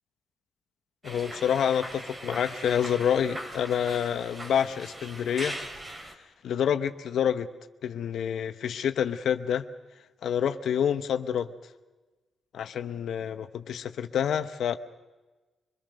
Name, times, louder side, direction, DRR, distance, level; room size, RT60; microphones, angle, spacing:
voice 1, 1.0-5.6 6.4-7.5 7.8-9.7 10.2-11.5 12.5-14.8, left 8 dB, 80° left, 9 dB, 0.9 m, -28 dB
sound 1, 1.0-6.1, right 1 dB, 30° right, 3.5 m, -40 dB
24.5 x 21.5 x 6.6 m, 1.2 s
cardioid pair, 85°, 0 cm